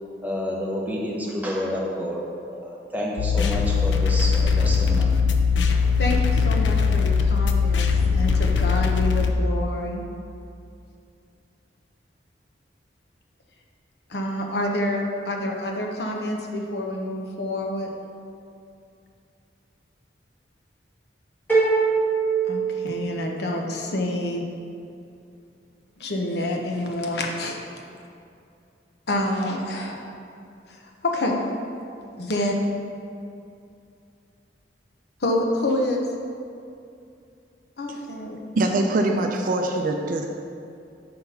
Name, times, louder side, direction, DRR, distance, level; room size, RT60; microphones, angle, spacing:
voice 1, 0.2-2.3 2.5-5.1, equal, 10° right, -3 dB, 0.9 m, -29 dB
sound 1, 3.2-9.3, left 5 dB, 90° left, 0.5 m, -20 dB
voice 2, 6.0-10.0 14.1-17.9 22.5-24.5 26.0-27.6 29.1-30.1 30.7-31.4 32.2-32.5 35.2-36.0 37.8-38.4, left 1 dB, 65° left, 1 dB, 0.8 m, -27 dB
sound 2, 21.5-23.5, right 4 dB, 10° left, 1.6 m, -22 dB
voice 3, 38.6-40.3, right 2 dB, 50° right, 3 dB, 0.4 m, -23 dB
5.8 x 4.0 x 5.5 m, 2.5 s
head